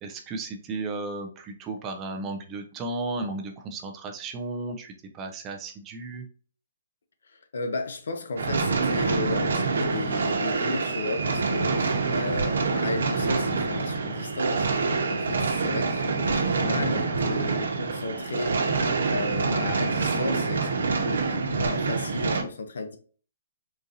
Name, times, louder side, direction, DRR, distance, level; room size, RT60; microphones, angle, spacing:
voice 1, 0.0-6.2, right 3 dB, 15° right, 0.3 m, -34 dB
voice 2, 7.5-18.8 19.1-20.7 21.0-23.0, left 3 dB, 70° left, 0.7 m, -33 dB
sound 1, 8.4-22.4, right 4 dB, 75° right, 0.8 m, -26 dB
3.8 x 2.5 x 2.7 m
hypercardioid pair, 175°, 0 cm